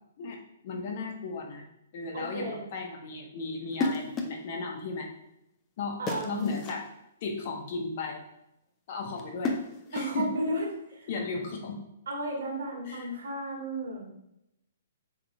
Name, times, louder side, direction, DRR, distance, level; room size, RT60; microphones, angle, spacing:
voice 1, 0.6-1.6 1.9-5.1 5.8-6.0 6.2-6.8 7.2-8.2 8.9-9.5 9.9-10.4 11.1-11.8 12.9-13.1, left 4 dB, 45° left, 2 dB, 1.3 m, -35 dB
voice 2, 2.1-2.7 6.0-6.5 9.9-11.1 12.1-14.1, right 1 dB, 65° right, -1 dB, 2.0 m, -33 dB
sound 1, 3.7-4.5 6.1-6.9 9.2-10.2, left 3 dB, 20° left, 0.8 m, -33 dB
6.9 x 4.1 x 3.6 m, 0.82 s
figure-of-eight pair, 120°, 0 cm